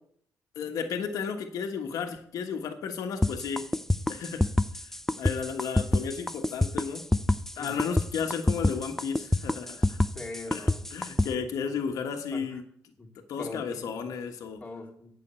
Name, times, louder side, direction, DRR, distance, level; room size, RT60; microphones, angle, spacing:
voice 1, 0.5-3.6 4.1-4.5 5.2-7.0 7.6-10.0 10.5-12.6 13.3-14.6, left 6 dB, 75° left, 4 dB, 1.4 m, -33 dB
sound 1, 3.2-11.3, left 1 dB, 5° left, 0.5 m, -26 dB
voice 2, 10.1-11.7 12.3-12.6 13.0-13.1 13.4-14.0 14.6-15.2, left 2 dB, 20° left, -1 dB, 2.8 m, -42 dB
8.8 x 6.3 x 8.2 m, 0.65 s
cardioid pair, 85°, 6 cm